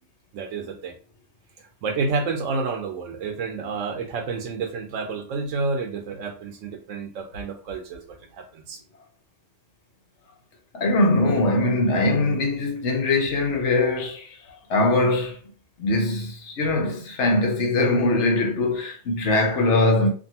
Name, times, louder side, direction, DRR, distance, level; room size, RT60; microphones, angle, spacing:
voice 1, 0.3-0.9 1.8-8.8, right 4 dB, 85° right, 1.0 m, -29 dB
voice 2, 10.7-14.3 14.7-15.4 15.8-20.1, left 2 dB, 70° left, 1.0 m, -21 dB
2.6 x 2.6 x 2.8 m
omnidirectional pair, 1.3 m